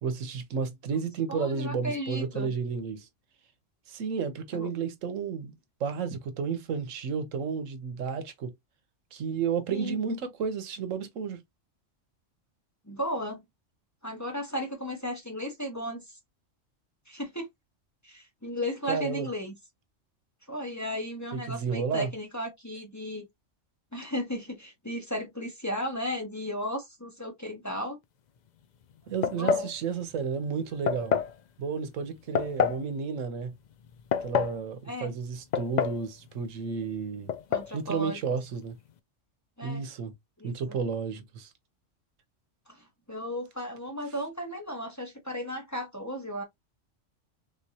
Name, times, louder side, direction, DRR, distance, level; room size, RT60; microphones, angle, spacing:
voice 1, 0.0-3.1 3.9-5.5 5.8-8.5 9.1-11.4 18.9-19.3 21.3-22.1 29.1-31.2 31.6-33.5 34.2-37.3 37.7-38.8 39.6-40.1 40.4-41.5, right 6 dB, 80° right, 1.1 m, -32 dB
voice 2, 1.3-2.5 4.5-4.7 9.7-10.0 12.9-13.4 14.0-16.0 17.1-17.5 18.0-19.5 20.5-23.3 23.9-28.0 29.3-29.7 34.8-35.1 37.5-38.2 39.6-39.8 40.4-40.8 42.7-46.4, equal, 15° left, 1.0 m, -35 dB
sound 1, 29.2-29.7 30.9-31.3 32.4-32.8 33.9-34.6 35.5-36.1 36.3-36.4 37.3-37.7, left 7 dB, 75° left, 0.4 m, -27 dB
3.4 x 3.1 x 2.7 m
omnidirectional pair, 1.3 m